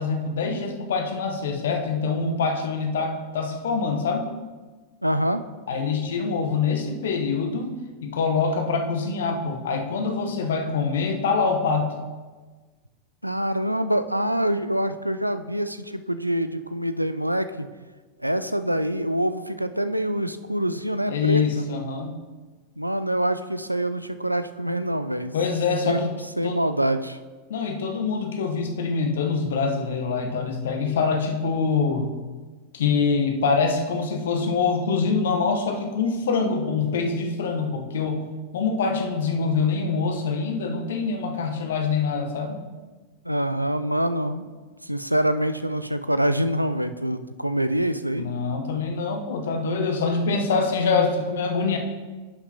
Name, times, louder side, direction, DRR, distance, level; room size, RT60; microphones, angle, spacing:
voice 1, 0.0-4.3 5.7-7.8 8.0-11.9 21.1-22.1 25.3-26.1 26.4-26.6 27.5-32.2 32.7-38.2 38.5-42.6 48.1-51.8, left 4 dB, 60° left, 4 dB, 0.9 m, -25 dB
voice 2, 5.0-5.4 13.2-17.7 18.2-21.7 22.8-25.3 25.8-26.1 26.4-27.2 43.2-44.5 44.8-48.3, right 1 dB, 90° right, 11 dB, 0.3 m, -25 dB
11.0 x 6.0 x 2.8 m, 1.3 s
figure-of-eight pair, 90°, 0 cm